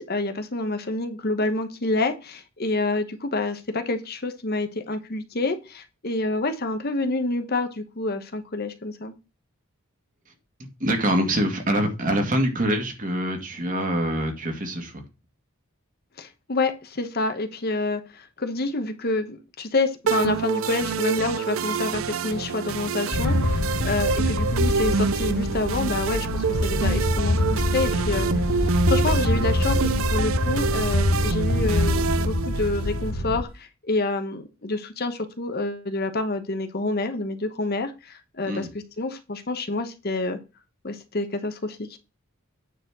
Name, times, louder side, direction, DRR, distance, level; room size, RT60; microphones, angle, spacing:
voice 1, 0.0-9.1 16.2-38.7 39.0-40.4 40.8-42.0, left 2 dB, 45° left, 1.0 m, -28 dB
voice 2, 10.8-15.1 38.4-38.7, right 1 dB, 40° right, 2.1 m, -25 dB
sound 1, 20.1-33.1, right 5 dB, 70° right, 0.5 m, -27 dB
sound 2, 23.1-33.4, left 2 dB, 85° left, 0.9 m, -25 dB
9.3 x 4.2 x 6.1 m
head